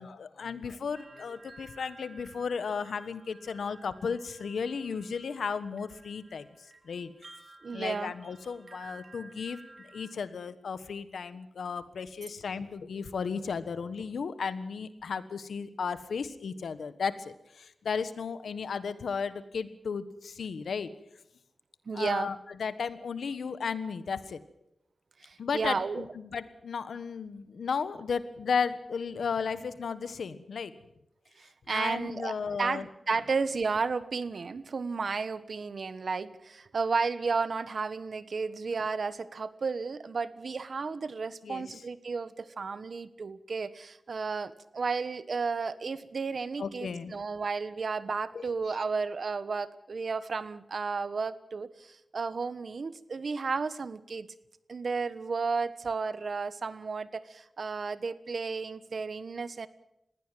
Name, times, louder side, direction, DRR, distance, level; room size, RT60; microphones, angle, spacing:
voice 1, 0.0-7.1 7.7-20.9 21.9-24.4 25.4-30.8 31.7-32.9 41.4-41.8 46.6-47.1 48.3-48.8, left 5 dB, 90° left, 13 dB, 1.3 m, -34 dB
sound 1, 0.9-10.1, right 2 dB, 45° right, 3.4 m, -54 dB
voice 2, 7.6-8.1 21.9-22.3 25.2-26.0 31.4-32.3 32.6-54.3 54.7-59.7, right 4 dB, 65° right, 15 dB, 1.2 m, -33 dB
20.5 x 16.0 x 9.2 m, 0.84 s
cardioid pair, 60°, 0 cm